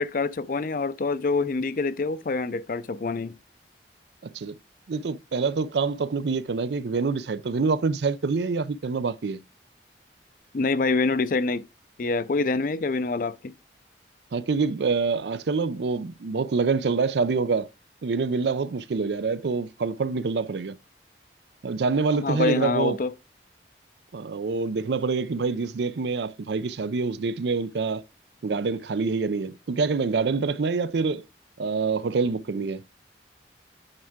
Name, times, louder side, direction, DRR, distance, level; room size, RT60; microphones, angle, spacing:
voice 1, 0.0-3.3 10.5-11.7 12.0-13.5 22.2-23.1, left 3 dB, 50° left, 0.5 m, -26 dB
voice 2, 4.9-9.4 14.3-17.7 18.0-20.8 21.6-23.0 24.1-28.0 28.4-31.2 31.6-32.8, right 4 dB, 75° right, 0.5 m, -26 dB
8.7 x 4.6 x 3.6 m
head